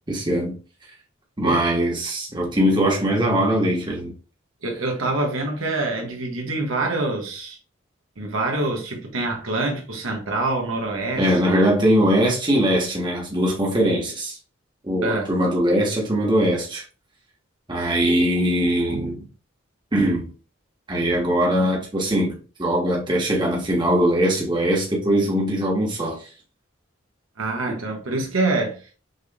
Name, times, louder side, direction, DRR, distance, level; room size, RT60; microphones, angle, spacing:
voice 1, 0.1-0.5 1.4-4.1 11.1-14.4 14.8-16.8 17.7-19.2 19.9-20.3 20.9-26.3, equal, 25° right, 1.3 m, -21 dB
voice 2, 4.6-7.6 8.2-11.7 15.0-15.3 17.8-17.9 27.4-28.9, right 2 dB, 85° right, 1.4 m, -26 dB
6.3 x 3.3 x 2.3 m
head